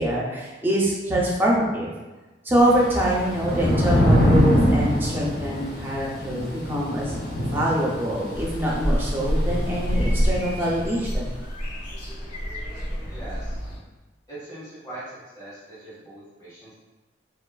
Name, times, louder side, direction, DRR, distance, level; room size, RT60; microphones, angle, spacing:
voice 1, 0.0-1.9 2.4-7.2 7.5-11.3, equal, 10° right, -5 dB, 0.5 m, -24 dB
Thunder / Rain, 2.6-11.0, equal, 60° left, 0.7 m, -24 dB
sound 1, 8.3-13.8, equal, 85° left, 1.2 m, -27 dB
voice 2, 13.1-13.5 14.3-16.8, right 1 dB, 20° left, -10 dB, 1.1 m, -41 dB
2.9 x 2.3 x 2.2 m, 1.2 s
head